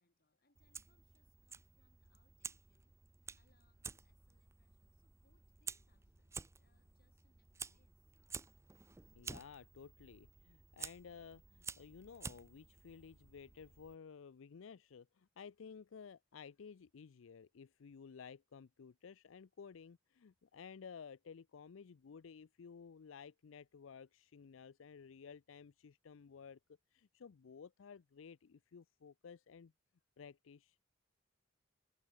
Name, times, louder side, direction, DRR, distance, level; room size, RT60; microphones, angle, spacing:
voice 1, 0.0-8.2 9.1-9.2, left 2 dB, 50° left, 4.7 m, -80 dB
Fire, 0.6-13.9, right 5 dB, 15° right, 0.5 m, -52 dB
voice 2, 9.1-26.6 26.9-29.7 30.2-30.8, left 6 dB, 85° left, 0.5 m, -55 dB
head